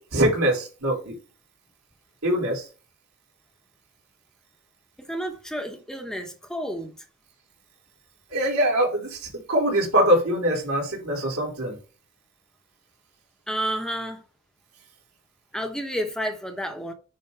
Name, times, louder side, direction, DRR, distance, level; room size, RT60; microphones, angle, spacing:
voice 1, 0.1-1.1 2.2-2.6 8.3-11.8, right 1 dB, 70° right, 4.3 m, -23 dB
voice 2, 5.0-6.9 13.5-14.2 15.5-16.9, equal, 5° left, 1.1 m, -30 dB
9.7 x 4.1 x 3.4 m
head